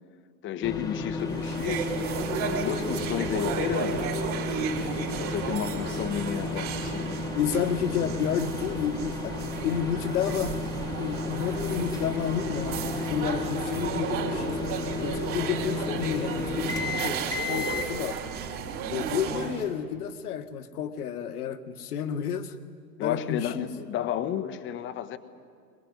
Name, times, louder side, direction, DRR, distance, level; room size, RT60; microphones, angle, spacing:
voice 1, 0.4-1.9 2.4-4.1 5.0-7.3 23.0-25.2, left 10 dB, 25° left, 10 dB, 1.1 m, -32 dB
sound 1, 0.6-17.9, left 3 dB, 10° left, 1.5 m, -33 dB
sound 2, 1.2-19.7, right 6 dB, 40° right, 4.3 m, -34 dB
voice 2, 7.3-9.4 9.6-10.6 11.0-14.6 15.0-16.8 17.0-18.2 18.9-22.6 23.0-23.6, left 8 dB, 65° left, 9 dB, 1.7 m, -31 dB
22.0 x 21.0 x 9.5 m, 2.1 s
hypercardioid pair, 110°, 49 cm